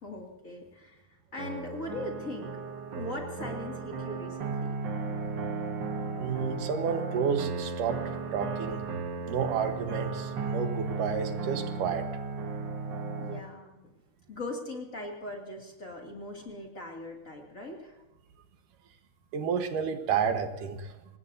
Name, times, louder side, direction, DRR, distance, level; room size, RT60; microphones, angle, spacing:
voice 1, 0.0-1.0 1.3-2.5 2.9-4.7 13.2-13.8 14.3-18.0, left 2 dB, 25° left, 0 dB, 2.4 m, -40 dB
sound 1, 1.4-13.4, right 4 dB, 60° right, 1.1 m, -35 dB
voice 2, 6.2-8.9 9.2-12.0 19.3-20.9, right 6 dB, 85° right, 7 dB, 2.9 m, -31 dB
25.0 x 19.5 x 2.7 m, 0.99 s
omnidirectional pair, 3.7 m